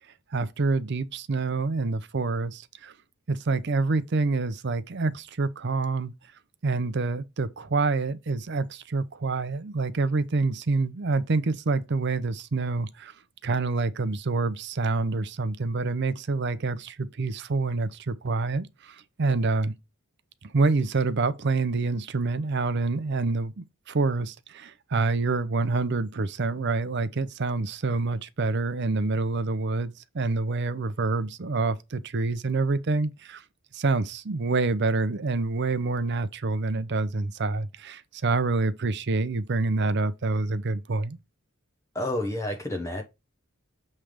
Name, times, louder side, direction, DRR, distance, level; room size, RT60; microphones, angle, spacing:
voice 1, 0.3-2.9 3.3-6.1 6.6-13.1 13.4-19.7 20.4-33.4 33.7-41.2, right 3 dB, 55° right, 0.6 m, -27 dB
voice 2, 41.9-43.0, left 1 dB, 15° left, 0.7 m, -29 dB
7.4 x 3.3 x 5.0 m
head